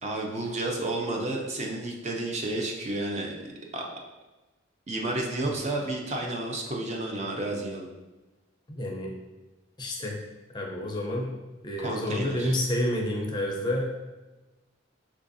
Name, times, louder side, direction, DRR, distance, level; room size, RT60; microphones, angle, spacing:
voice 1, 0.0-3.8 4.9-7.9 11.8-12.6, right 2 dB, 35° right, 0 dB, 0.4 m, -31 dB
voice 2, 8.7-9.1 9.8-10.2 10.5-11.3 11.6-14.0, left 1 dB, 20° left, -1 dB, 0.4 m, -29 dB
4.6 x 2.4 x 2.5 m, 1.1 s
head